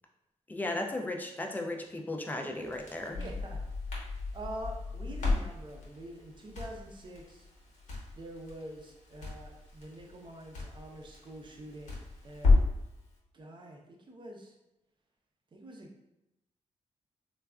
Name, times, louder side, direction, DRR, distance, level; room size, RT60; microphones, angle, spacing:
voice 1, 0.5-3.2, left 2 dB, 15° left, 2 dB, 0.4 m, -35 dB
Crackle, 2.6-12.9, left 3 dB, 85° left, 0.9 m, -33 dB
voice 2, 3.2-3.6 4.3-7.5 8.1-12.6 13.3-14.5 15.5-15.9, right 1 dB, 40° right, 0 dB, 0.6 m, -46 dB
3.2 x 2.3 x 2.3 m, 0.91 s
cardioid pair, 100°, 12 cm